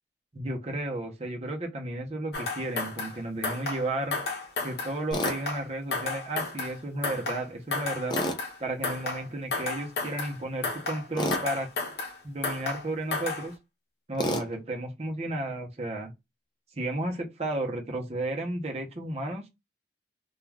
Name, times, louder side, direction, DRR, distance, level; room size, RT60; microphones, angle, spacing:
voice 1, 0.3-4.2 4.6-8.1 8.6-11.7 12.2-13.5 14.1-16.1 16.8-19.4, right 1 dB, 35° right, 0.7 m, -33 dB
sound 1, 2.3-3.2 3.4-3.9 4.1-5.0 5.2-5.7 5.9-6.8 7.0-7.5 7.7-8.6 8.8-9.3 9.5-10.4 10.6-11.1 11.3-12.2 12.4-12.9 13.1-13.5, left 3 dB, 65° left, 0.7 m, -32 dB
Tools, 5.1-5.4 8.1-8.4 11.2-11.4 14.2-14.5, equal, 25° left, 0.4 m, -29 dB
2.3 x 2.3 x 3.2 m
head